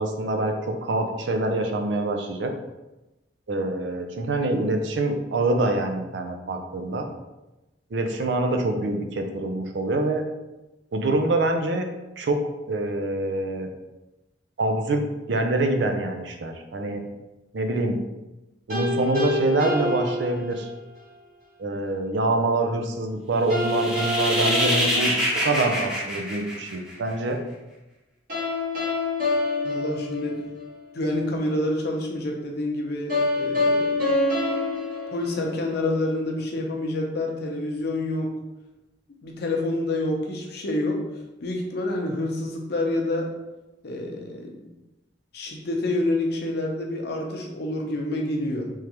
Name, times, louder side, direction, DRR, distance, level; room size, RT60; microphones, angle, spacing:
voice 1, 0.0-2.5 3.5-7.1 7.9-10.2 10.9-11.9 12.2-12.4 12.7-13.7 14.6-17.0 17.5-18.0 18.7-20.7 21.6-27.4, right 2 dB, 70° right, 4 dB, 0.5 m, -25 dB
sound 1, 18.7-20.9 23.5-25.9 28.3-30.8 33.1-35.9, left 2 dB, 50° right, 1.5 m, -27 dB
sound 2, 23.5-27.1, equal, 5° right, 0.8 m, -26 dB
voice 2, 29.6-30.4 30.9-34.1 35.1-38.3 39.1-41.0 41.4-43.4 43.8-44.7 45.3-48.7, left 1 dB, 60° left, 1 dB, 0.7 m, -28 dB
3.6 x 3.1 x 2.9 m, 1.0 s
head